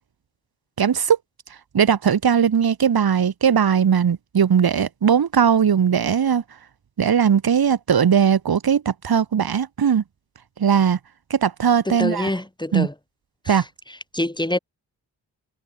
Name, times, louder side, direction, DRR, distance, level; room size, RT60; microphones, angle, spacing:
voice 1, 0.8-1.2 1.7-6.4 7.0-10.0 10.6-11.0 11.3-12.3 12.7-12.9 13.5-13.6, right 7 dB, 65° right, 5.6 m, -19 dB
voice 2, 11.9-12.9 13.5-13.6 14.1-14.6, left 1 dB, 10° left, 5.9 m, -25 dB
cardioid pair, 70°, 40 cm